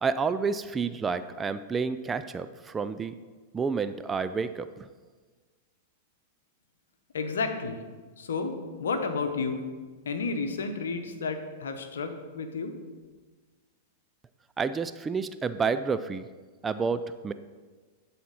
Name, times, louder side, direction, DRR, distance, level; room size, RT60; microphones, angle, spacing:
voice 1, 0.0-3.1 3.5-4.9 14.6-16.3 16.6-17.3, right 5 dB, 20° right, 12 dB, 0.4 m, -29 dB
voice 2, 7.1-7.8 8.2-8.5 8.8-9.7 10.0-12.7, left 4 dB, 80° left, 7 dB, 0.9 m, -31 dB
11.0 x 4.2 x 5.6 m, 1.4 s
hypercardioid pair, 105°, 0 cm